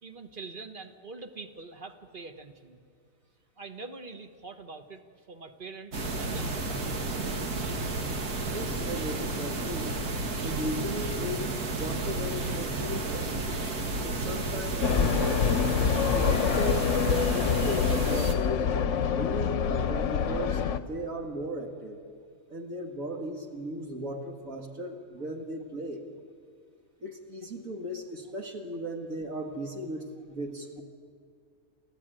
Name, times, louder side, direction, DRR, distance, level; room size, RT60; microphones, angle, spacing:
voice 1, 0.0-2.8 3.6-5.0 5.3-7.1, right 3 dB, 35° right, 7 dB, 1.3 m, -44 dB
sound 1, 5.9-18.3, right 2 dB, 80° right, 2.2 m, -32 dB
voice 2, 8.5-9.9 10.4-13.6 14.0-15.4 16.1-17.0 17.3-18.8 19.0-22.0 22.5-26.0 27.0-30.8, equal, 65° right, 2 dB, 2.1 m, -36 dB
sound 2, 14.8-20.8, left 7 dB, 60° left, 1.0 m, -26 dB
29.5 x 14.0 x 9.0 m, 2.2 s
omnidirectional pair, 1.6 m